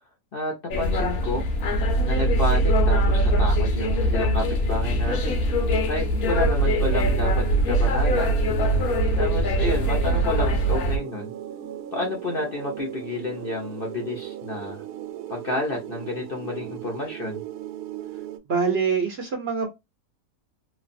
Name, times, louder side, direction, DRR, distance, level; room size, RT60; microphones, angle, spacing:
voice 1, 0.3-1.5 2.0-5.4 5.9-11.3 11.9-14.8 15.3-17.4, left 2 dB, 50° left, 0.7 m, -30 dB
sound 1, 0.7-11.0, right 1 dB, 70° left, 1.2 m, -22 dB
sound 2, 0.7-18.4, right 10 dB, 75° right, 1.0 m, -37 dB
voice 2, 18.5-19.7, right 5 dB, 50° right, 0.9 m, -24 dB
3.1 x 2.3 x 2.5 m
omnidirectional pair, 1.7 m